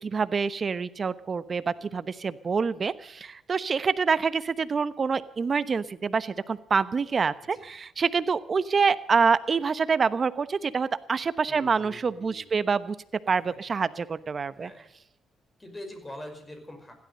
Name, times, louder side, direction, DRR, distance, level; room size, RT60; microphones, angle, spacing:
voice 1, 0.0-13.0 13.3-14.7, right 5 dB, 40° right, 15 dB, 1.0 m, -26 dB
voice 2, 7.4-7.7 11.5-12.6 13.9-14.1 14.5-14.9 15.6-16.9, left 1 dB, 15° left, 6 dB, 5.3 m, -44 dB
16.0 x 12.5 x 6.6 m, 0.79 s
cardioid pair, 90°, 0 cm